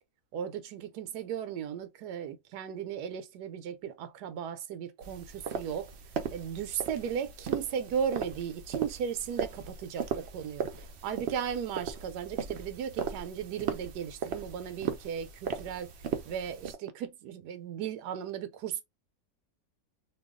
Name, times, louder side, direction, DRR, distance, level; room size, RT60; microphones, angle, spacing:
voice 1, 0.3-5.9 6.3-10.7 11.0-15.9 16.2-18.8, right 8 dB, 85° right, 1.2 m, -36 dB
sound 1, 5.0-16.8, right 7 dB, 70° right, 0.6 m, -37 dB
2.8 x 2.3 x 3.5 m
omnidirectional pair, 1.7 m